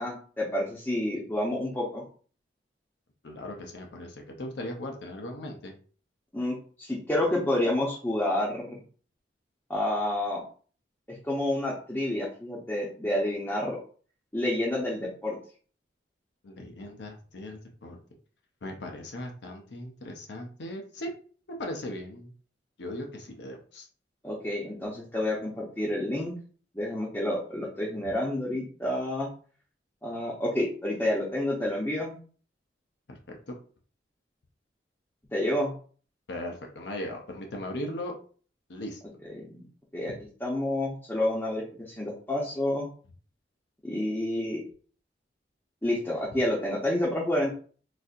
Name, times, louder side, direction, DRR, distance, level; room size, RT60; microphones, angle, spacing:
voice 1, 0.0-2.0 6.3-8.8 9.7-10.4 11.1-13.8 14.3-15.4 24.2-26.3 26.7-29.3 30.0-32.2 35.3-35.7 39.3-39.6 39.9-40.1 40.4-42.9 43.8-44.6 45.8-47.5, left 1 dB, 10° left, -5 dB, 0.7 m, -29 dB
voice 2, 3.2-5.7 16.4-18.0 18.6-21.1 21.6-22.3 22.8-23.9 33.1-33.6 36.3-38.1 38.7-39.0, left 1 dB, 70° left, 2 dB, 0.6 m, -38 dB
4.0 x 2.6 x 2.4 m, 0.42 s
head